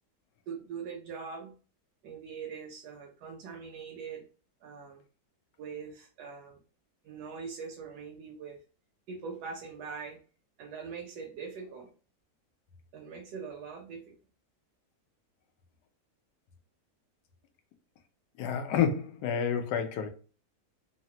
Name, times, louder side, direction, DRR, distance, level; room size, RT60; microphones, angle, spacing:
voice 1, 0.5-1.6 2.0-4.2 4.6-5.0 5.6-6.6 7.0-8.6 9.1-10.2 10.6-11.9 12.9-14.1, right 5 dB, 90° right, 1.1 m, -42 dB
voice 2, 18.4-20.1, left 7 dB, 85° left, 1.1 m, -29 dB
3.2 x 2.0 x 2.7 m
omnidirectional pair, 1.7 m